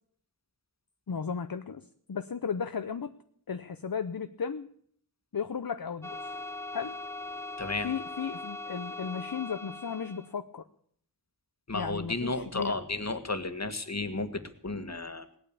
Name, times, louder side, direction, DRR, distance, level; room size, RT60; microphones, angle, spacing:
voice 1, 1.1-3.1 3.5-4.7 5.3-6.1 6.7-7.0 7.8-10.6 11.7-12.8, left 6 dB, 60° left, 10 dB, 0.9 m, -35 dB
sound 1, 6.0-10.3, left 2 dB, 5° left, 0.8 m, -40 dB
voice 2, 7.6-7.9 11.7-15.3, left 2 dB, 40° left, 9 dB, 1.8 m, -33 dB
19.0 x 9.0 x 8.5 m, 0.63 s
wide cardioid pair, 55°, 41 cm